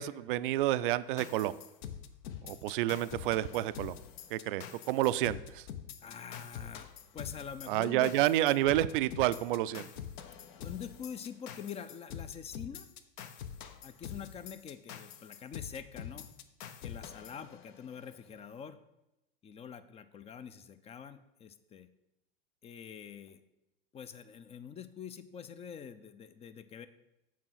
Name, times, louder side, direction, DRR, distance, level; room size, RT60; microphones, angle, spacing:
voice 1, 0.0-1.6 2.4-4.0 4.3-5.6 7.7-9.9, right 14 dB, 65° right, 16 dB, 0.4 m, -29 dB
sound 1, 1.2-18.1, left 9 dB, 55° left, 0.8 m, -45 dB
voice 2, 6.0-8.1 10.6-12.9 13.8-16.3 16.8-18.8 19.4-21.9 22.6-23.4 23.9-26.9, left 7 dB, 20° left, 12 dB, 0.5 m, -45 dB
7.5 x 4.7 x 5.7 m, 0.92 s
hypercardioid pair, 95°, 29 cm